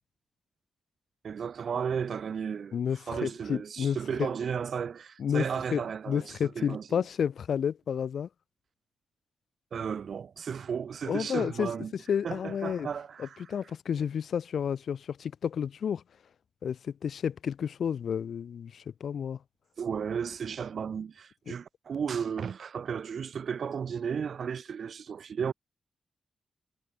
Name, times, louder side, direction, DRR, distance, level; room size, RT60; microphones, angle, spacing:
voice 1, 1.2-2.8 3.1-7.0 9.7-11.9 12.2-13.4 19.8-25.5, right 7 dB, 60° right, 2.4 m, -34 dB
voice 2, 2.7-4.3 5.2-5.4 5.7-8.3 11.0-11.7 12.1-12.9 13.2-16.0 16.6-19.4, left 7 dB, 75° left, 3.4 m, -31 dB
wide cardioid pair, 150°, 0 cm